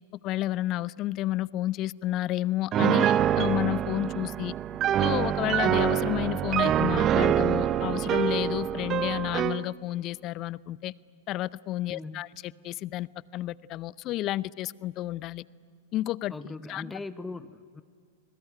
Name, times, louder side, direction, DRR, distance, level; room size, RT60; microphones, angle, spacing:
voice 1, 0.2-4.5 5.0-10.9 11.3-15.4 15.9-16.3 16.7-16.9, left 15 dB, 40° left, 21 dB, 0.6 m, -31 dB
Piano, 2.7-9.6, right 10 dB, 35° right, 0.7 m, -25 dB
voice 2, 11.9-12.2 16.3-17.8, left 3 dB, 10° left, 13 dB, 0.8 m, -39 dB
27.5 x 20.0 x 9.9 m, 2.1 s
hypercardioid pair, 105°, 0 cm